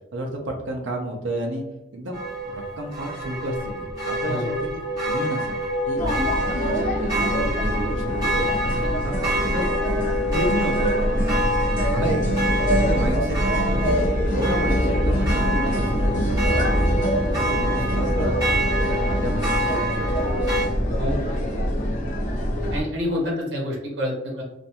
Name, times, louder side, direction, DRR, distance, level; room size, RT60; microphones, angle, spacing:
voice 1, 0.1-1.6 1.9-4.8 5.0-5.6 5.9-6.0 6.5-8.8 9.0-9.7 10.3-11.5 11.9-12.5 12.8-13.4 13.7-13.9 14.3-17.1 17.5-18.3 18.9-20.5, right 1 dB, 85° right, 1 dB, 0.5 m, -31 dB
sound 1, 2.1-20.7, equal, 20° right, 0.9 m, -27 dB
sound 2, 6.0-22.8, equal, 40° left, 0.6 m, -24 dB
voice 2, 22.7-24.4, left 1 dB, 70° right, -3 dB, 0.9 m, -27 dB
2.5 x 2.2 x 2.7 m, 0.93 s
head